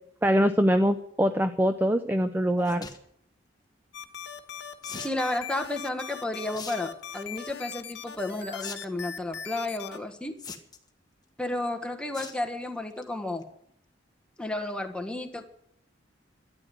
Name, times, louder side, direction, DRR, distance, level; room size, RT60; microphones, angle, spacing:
voice 1, 0.2-2.8, equal, 10° right, 9 dB, 0.6 m, -23 dB
sound 1, 2.6-3.0 4.8-5.2 6.5-6.8 7.1-7.5 8.6-8.8 9.1-9.2 10.4-10.9 12.1-12.4 12.8-13.0 13.4-13.5 13.7-13.8, left 5 dB, 20° left, 1.6 m, -40 dB
sound 2, 3.9-10.0, left 7 dB, 65° left, 1.4 m, -40 dB
voice 2, 5.0-10.3 11.4-13.5 14.4-15.4, left 2 dB, 5° left, 5 dB, 1.4 m, -32 dB
13.0 x 10.5 x 9.2 m, 0.71 s
head